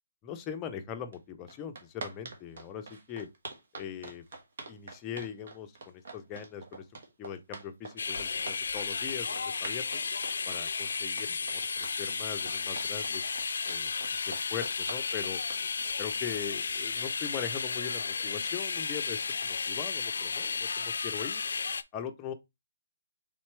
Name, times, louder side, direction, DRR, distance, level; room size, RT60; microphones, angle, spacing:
voice 1, 0.2-3.3 3.8-4.2 4.7-6.8 7.2-10.0 10.4-13.2 13.7-13.9 14.3-15.4 16.0-21.4 21.9-22.3, left 8 dB, 20° left, 0.6 m, -40 dB
sound 1, 1.1-1.2 1.5-17.1, right 3 dB, 60° right, 1.4 m, -45 dB
sound 2, 8.0-21.8, left 5 dB, 70° left, 0.4 m, -33 dB
4.3 x 3.7 x 3.2 m
hypercardioid pair, 160°, 0 cm